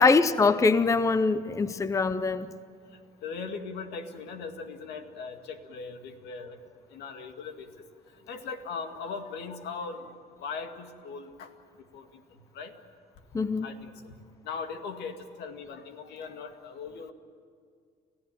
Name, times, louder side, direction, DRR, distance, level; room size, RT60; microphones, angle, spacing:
voice 1, 0.0-2.5 13.3-13.7, left 4 dB, 20° left, 0.7 m, -23 dB
voice 2, 3.2-6.6 6.9-7.7 8.3-10.1 10.4-11.5 11.9-12.0 12.5-12.7 13.6-14.1 14.4-17.1, left 5 dB, 80° left, 2.1 m, -39 dB
29.0 x 15.5 x 9.1 m
cardioid pair, 110°, 17 cm